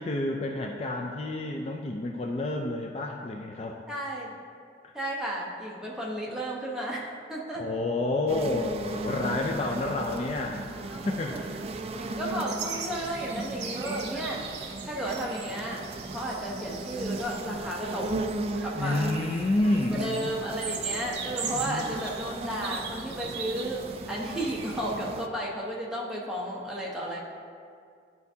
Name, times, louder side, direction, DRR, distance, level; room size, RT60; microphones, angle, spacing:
voice 1, 0.0-3.8 4.8-4.9 7.6-10.7 11.1-11.6 18.8-20.3 21.5-21.8, left 2 dB, 35° left, 1 dB, 0.4 m, -29 dB
voice 2, 3.9-4.4 4.9-7.7 10.9-11.4 12.0-14.4 14.9-15.8 16.1-18.1 18.6-19.2 19.9-23.8 24.1-27.2, right 1 dB, 5° right, -4 dB, 1.0 m, -33 dB
sound 1, 8.3-25.3, right 2 dB, 35° right, 0.3 m, -37 dB
sound 2, 12.5-24.8, right 6 dB, 70° right, 0.8 m, -40 dB
11.5 x 4.6 x 2.7 m, 2.2 s
head